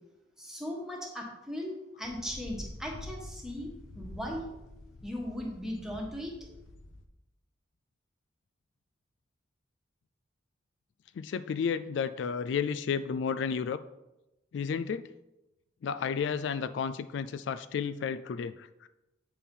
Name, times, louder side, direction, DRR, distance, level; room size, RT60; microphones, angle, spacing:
voice 1, 0.4-4.5 5.0-6.3, equal, 5° right, -1 dB, 1.4 m, -38 dB
sound 1, 2.0-7.0, left 1 dB, 90° left, 0.8 m, -47 dB
voice 2, 11.2-13.8 14.5-15.1 15.8-18.9, left 6 dB, 65° left, 13 dB, 0.3 m, -32 dB
8.8 x 4.4 x 5.3 m, 0.95 s
head